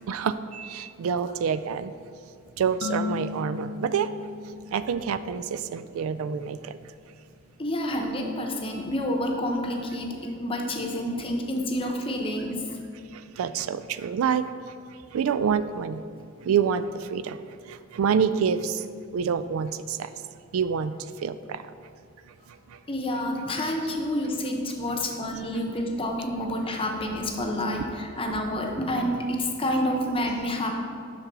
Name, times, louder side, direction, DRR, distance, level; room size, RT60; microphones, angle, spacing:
voice 1, 0.1-1.9 2.6-4.1 4.7-6.8 13.1-14.5 15.1-16.0 16.4-17.4 17.7-18.8 19.1-20.1 20.5-20.9 21.2-21.6, right 7 dB, 90° right, 13 dB, 0.3 m, -27 dB
sound 1, 2.8-5.5, left 5 dB, 60° left, 0.6 m, -35 dB
voice 2, 7.6-12.8 22.9-30.7, left 1 dB, 25° left, 2 dB, 0.8 m, -28 dB
6.7 x 6.0 x 4.7 m, 2.4 s
head